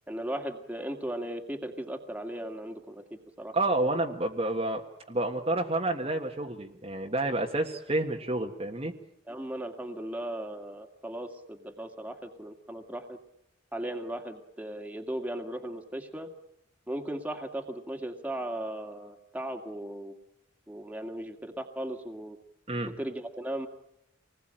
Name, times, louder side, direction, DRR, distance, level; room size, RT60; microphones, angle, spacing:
voice 1, 0.1-3.5 9.3-13.2 13.7-16.3 16.9-20.1 20.7-22.4 23.0-23.7, right 1 dB, 5° right, 4 dB, 2.1 m, -37 dB
voice 2, 3.5-4.8 5.1-8.9 22.7-22.9, right 2 dB, 30° right, 1 dB, 1.6 m, -29 dB
26.5 x 20.5 x 9.0 m, 0.81 s
head